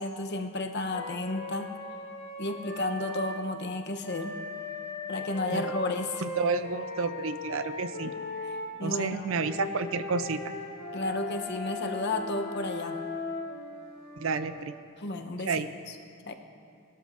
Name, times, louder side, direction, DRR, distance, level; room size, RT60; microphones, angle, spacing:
voice 1, 0.0-1.7 2.4-4.4 5.1-6.2 8.0-8.1 8.8-9.4 10.9-13.0 15.0-16.0 16.2-16.3, left 2 dB, 50° left, 5 dB, 0.8 m, -32 dB
Wind instrument woodwind instrument, 0.9-3.4 4.0-8.7 9.3-14.7, left 2 dB, 65° left, 3.4 m, -39 dB
voice 2, 6.2-8.1 8.8-10.4 14.2-14.7 15.5-15.7, right 4 dB, 60° right, 11 dB, 0.5 m, -30 dB
sound 1, 9.1-13.3, equal, 15° left, 1.2 m, -50 dB
20.5 x 12.5 x 2.6 m, 2.5 s
head